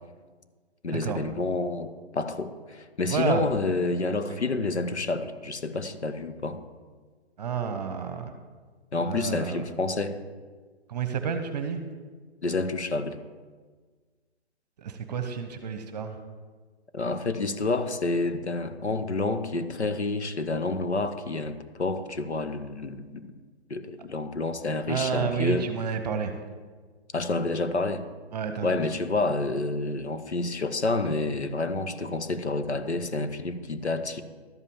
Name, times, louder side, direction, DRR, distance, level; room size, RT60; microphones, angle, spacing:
voice 1, 0.8-6.6 8.9-10.1 12.4-13.2 16.9-23.3 23.7-25.6 27.1-28.0 28.6-34.2, left 3 dB, 85° left, 10 dB, 1.3 m, -29 dB
voice 2, 3.1-3.4 4.3-4.4 7.4-8.3 9.0-9.6 10.9-11.8 14.8-16.2 24.9-26.3 28.3-28.8, right 6 dB, 40° right, 8 dB, 1.0 m, -30 dB
12.5 x 5.5 x 7.2 m, 1.5 s
figure-of-eight pair, 145°, 33 cm